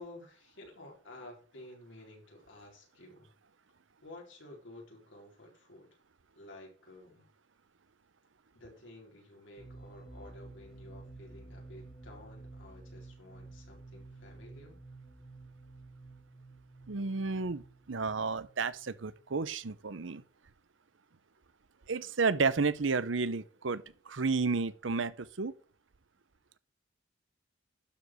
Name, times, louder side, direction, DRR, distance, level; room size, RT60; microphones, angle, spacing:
voice 1, 0.0-3.3 4.0-6.0 6.3-7.3 8.5-14.8, left 2 dB, 80° left, 4.1 m, -52 dB
sound 1, 9.6-19.2, right 2 dB, 30° left, 1.8 m, -52 dB
voice 2, 16.9-20.2 21.9-25.5, right 4 dB, 90° right, 0.8 m, -32 dB
12.0 x 5.1 x 6.2 m
head